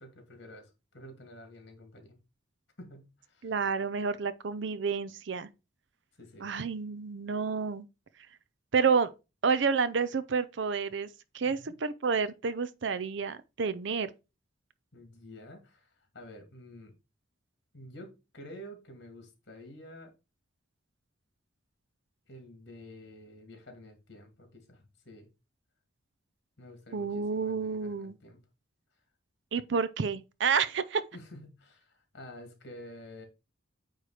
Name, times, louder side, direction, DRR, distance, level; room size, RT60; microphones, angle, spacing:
voice 1, 0.0-2.2 2.8-3.5 6.2-6.5 11.4-11.7 14.9-16.9 17.7-20.1 22.3-25.3 26.6-28.4 31.1-33.3, left 1 dB, 55° left, 2.2 m, -49 dB
voice 2, 3.4-5.5 6.4-7.9 8.7-9.1 9.4-11.1 11.3-14.1 26.9-28.2 29.5-31.0, right 5 dB, 60° right, 0.5 m, -29 dB
9.0 x 3.1 x 4.8 m
head